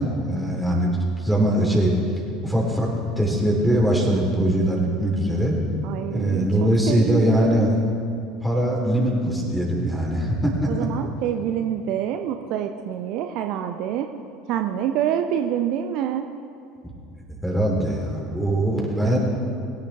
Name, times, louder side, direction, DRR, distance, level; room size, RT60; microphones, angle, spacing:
voice 1, 0.0-1.9 2.4-5.6 6.1-7.8 8.4-10.9 17.4-19.2, right 1 dB, ahead, -2 dB, 3.6 m, -22 dB
voice 2, 5.8-7.7 10.7-14.1 14.5-16.3, right 10 dB, 50° right, 6 dB, 0.6 m, -26 dB
21.5 x 10.5 x 3.5 m, 2.5 s
figure-of-eight pair, 70°, 0 cm